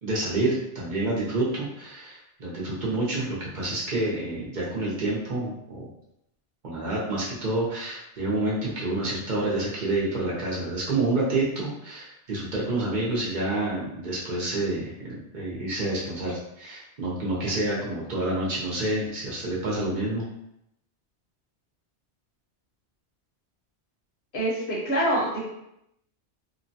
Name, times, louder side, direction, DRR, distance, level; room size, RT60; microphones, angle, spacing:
voice 1, 0.0-5.8 6.6-20.2, right 2 dB, 50° right, -6 dB, 0.8 m, -28 dB
voice 2, 24.3-25.4, right 1 dB, 65° left, -6 dB, 1.2 m, -25 dB
3.0 x 2.1 x 2.6 m, 0.81 s
omnidirectional pair, 1.2 m